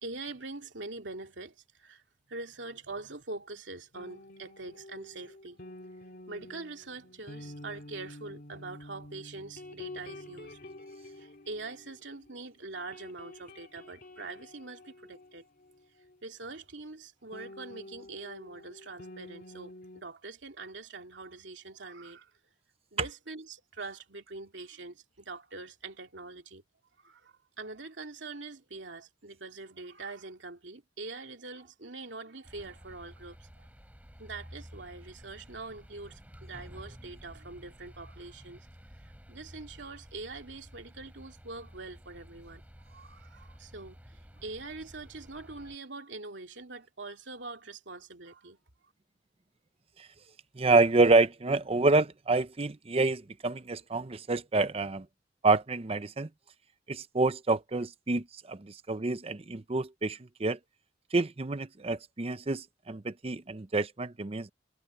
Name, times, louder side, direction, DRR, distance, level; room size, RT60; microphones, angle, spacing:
voice 1, 0.0-2.0 2.3-5.6 6.3-10.6 11.1-15.4 16.2-22.3 22.9-26.6 27.0-33.7 34.2-38.7 39.3-48.6, right 3 dB, 80° right, 2.7 m, -44 dB
sound 1, 3.9-12.4 12.7-16.1 17.3-20.0, left 1 dB, 55° left, 3.1 m, -49 dB
sound 2, 32.4-45.8, equal, 10° right, 6.3 m, -52 dB
voice 2, 50.6-55.1 55.4-56.3 56.9-60.6 61.1-64.5, right 3 dB, 35° right, 0.6 m, -27 dB
head